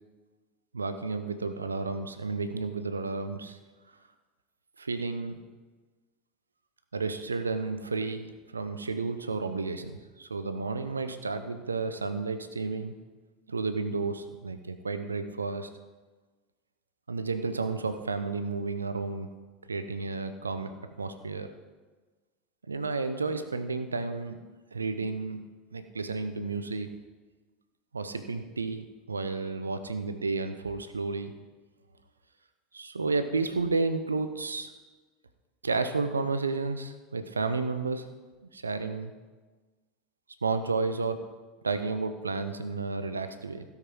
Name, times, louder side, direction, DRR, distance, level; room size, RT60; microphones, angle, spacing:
voice 1, 0.7-3.6 4.8-5.4 6.9-12.9 13.5-15.7 17.1-19.3 19.7-20.7 21.0-21.5 22.7-24.4 24.7-25.4 25.7-26.9 27.9-31.3 32.7-34.7 35.6-38.1 38.5-39.1 40.4-41.2 41.6-43.6, right 3 dB, 80° right, 9 dB, 0.7 m, -32 dB
16.0 x 5.8 x 4.6 m, 1.3 s
figure-of-eight pair, 75°, 0 cm